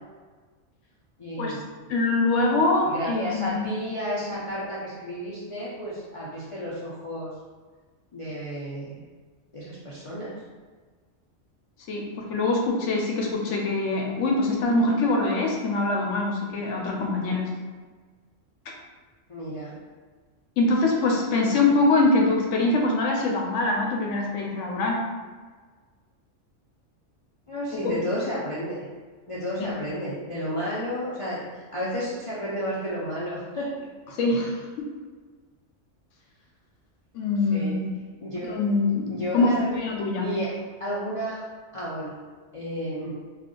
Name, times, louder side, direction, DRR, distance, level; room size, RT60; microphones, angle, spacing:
voice 1, 1.2-1.6 2.5-7.3 8.1-9.0 9.5-10.3 19.3-19.7 27.5-28.8 29.3-33.7 37.5-37.8 38.2-38.6 39.1-39.8 40.2-40.5 40.8-41.5 41.7-42.1 42.5-43.1, equal, 60° left, -8 dB, 0.3 m, -32 dB
voice 2, 1.9-3.6 11.9-17.5 20.6-25.0 27.8-28.0 29.6-29.7 34.1-34.9 37.1-37.9 38.5-40.3, left 2 dB, 80° left, 0 dB, 0.9 m, -24 dB
2.5 x 2.3 x 3.7 m, 1.4 s
omnidirectional pair, 1.3 m